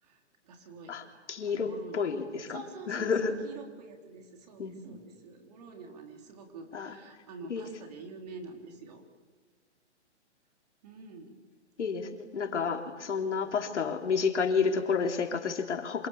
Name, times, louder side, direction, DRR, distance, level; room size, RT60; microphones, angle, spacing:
voice 1, 0.0-1.0 1.4-2.2 2.5-9.0 10.8-11.4, right 4 dB, 35° right, 4 dB, 3.6 m, -47 dB
voice 2, 0.9-3.4 4.6-4.8 6.7-6.9 7.5-7.6 11.8-16.1, left 5 dB, 80° left, 4 dB, 3.8 m, -30 dB
29.0 x 27.0 x 7.2 m, 1.5 s
hypercardioid pair, 170°, 35 cm